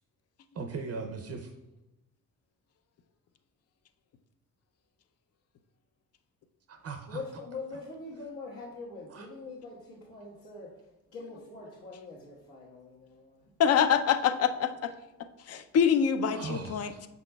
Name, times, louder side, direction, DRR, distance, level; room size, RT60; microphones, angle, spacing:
voice 1, 0.5-1.5 6.7-7.2 7.7-7.8 9.1-9.3 16.2-17.1, right 4 dB, 45° right, 5 dB, 0.5 m, -39 dB
voice 2, 7.1-10.8 11.1-13.4, left 3 dB, 65° left, -8 dB, 1.3 m, -43 dB
voice 3, 13.6-14.9 15.5-16.9, left 7 dB, 50° left, 11 dB, 0.4 m, -25 dB
7.0 x 6.1 x 2.2 m, 0.97 s
cardioid pair, 140°, 33 cm